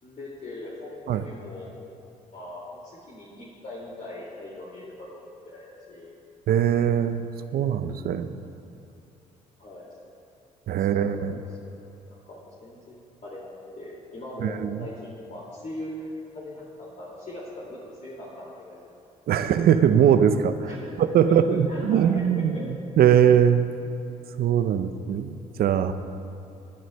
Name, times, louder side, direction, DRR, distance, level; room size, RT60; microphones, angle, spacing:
voice 1, 0.0-1.7 2.3-6.1 9.6-9.9 10.8-11.4 11.6-11.7 12.1-16.1 16.3-18.8 19.4-19.5 20.6-21.4 21.6-22.1 22.4-22.7, left 1 dB, 45° left, -6 dB, 2.4 m, -41 dB
voice 2, 6.5-7.2 7.5-8.3 10.7-11.4 14.4-14.9 19.3-20.7 21.0-22.6 23.0-23.7 24.4-25.9, right 9 dB, 55° right, 10 dB, 0.6 m, -21 dB
20.5 x 10.0 x 2.3 m, 2.7 s
hypercardioid pair, 50°, 18 cm